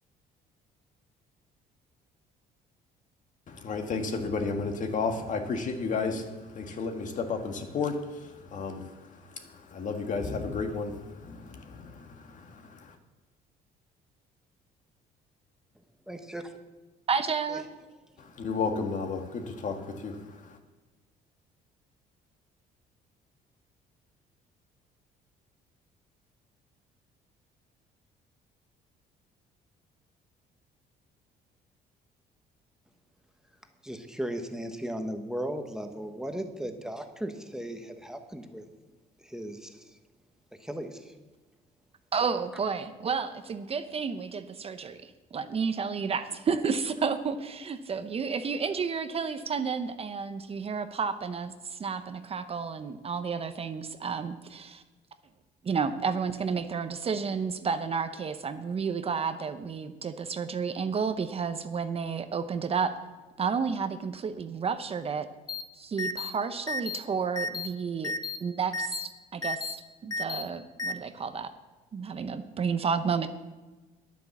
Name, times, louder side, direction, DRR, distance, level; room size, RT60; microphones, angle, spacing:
voice 1, 3.5-12.9 18.4-20.6, left 4 dB, 50° left, 1.7 m, -33 dB
voice 2, 16.1-16.4 17.5-17.6 33.8-38.6 39.2-40.0 40.6-41.1, right 1 dB, 5° right, 1.2 m, -36 dB
voice 3, 17.1-17.6 42.1-54.8 55.6-63.0 63.4-65.3 65.7-68.1 68.4-71.5 71.9-73.3, right 5 dB, 35° right, 0.8 m, -31 dB
sound 1, 65.5-65.6 66.0-66.3 66.7-67.0 67.4-67.7 68.0-68.4 68.7-69.1 69.4-69.7 70.1-70.4 70.8-70.9, left 3 dB, 20° left, 0.8 m, -32 dB
10.5 x 9.3 x 7.2 m
cardioid pair, 110°, 17 cm